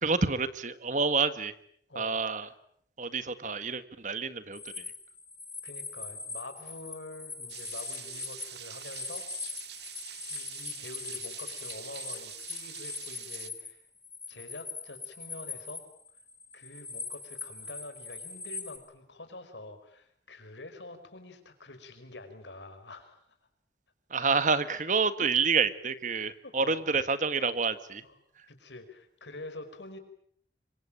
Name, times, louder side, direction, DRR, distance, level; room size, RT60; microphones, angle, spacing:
voice 1, 0.0-1.5 2.0-2.5 3.0-4.9 24.1-28.0, right 4 dB, 45° right, 12 dB, 1.6 m, -28 dB
voice 2, 1.9-2.6 5.6-9.3 9.6-9.8 10.3-13.8 14.3-15.9 16.5-23.3 26.4-26.9 28.0-28.2 28.5-30.0, left 2 dB, 90° left, 8 dB, 5.3 m, -46 dB
sound 1, 4.5-13.7 14.0-18.8, left 3 dB, 10° left, 4.2 m, -41 dB
sound 2, 7.5-13.5, right 11 dB, 70° right, 2.0 m, -45 dB
26.5 x 24.0 x 8.9 m, 0.67 s
head